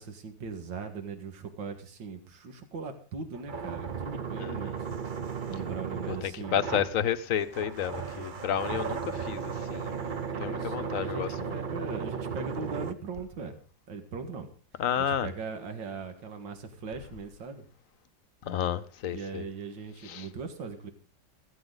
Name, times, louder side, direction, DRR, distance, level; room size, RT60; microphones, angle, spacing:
voice 1, 0.0-4.9 5.5-6.7 10.3-11.3 11.5-13.6 13.9-14.5 15.2-17.6 19.1-20.9, right 5 dB, 80° right, 2.5 m, -39 dB
sound 1, 3.3-12.9, right 6 dB, 40° right, 0.7 m, -35 dB
voice 2, 4.4-4.8 6.1-11.6 14.8-15.3 18.4-19.4 20.0-20.3, left 9 dB, 55° left, 1.0 m, -31 dB
16.0 x 15.0 x 4.0 m
omnidirectional pair, 2.0 m